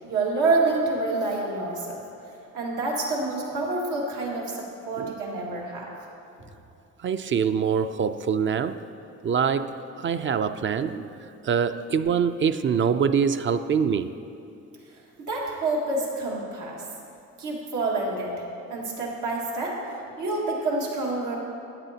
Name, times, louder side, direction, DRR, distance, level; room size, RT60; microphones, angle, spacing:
voice 1, 0.0-2.0 2.5-5.9 15.3-16.8 17.4-18.4 18.7-19.8 20.2-21.4, right 3 dB, 85° right, -3 dB, 1.9 m, -27 dB
voice 2, 7.0-8.8 9.2-14.1, right 6 dB, 40° right, 11 dB, 0.4 m, -25 dB
13.5 x 9.9 x 2.8 m, 2.7 s
cardioid pair, 90°, 30 cm